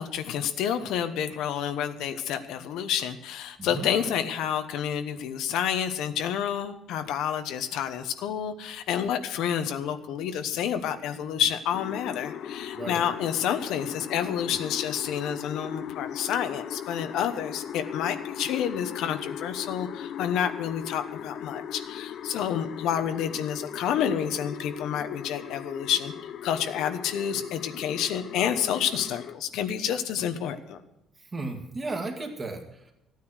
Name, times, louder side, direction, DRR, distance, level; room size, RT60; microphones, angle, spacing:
voice 1, 0.0-26.1 26.4-30.8, left 9 dB, 80° left, 9 dB, 1.0 m, -29 dB
sound 1, 11.7-29.4, left 9 dB, 55° left, 0.5 m, -38 dB
voice 2, 31.3-32.9, right 2 dB, 20° right, 3 dB, 1.9 m, -34 dB
14.5 x 9.5 x 6.4 m, 0.85 s
cardioid pair, 170°, 0 cm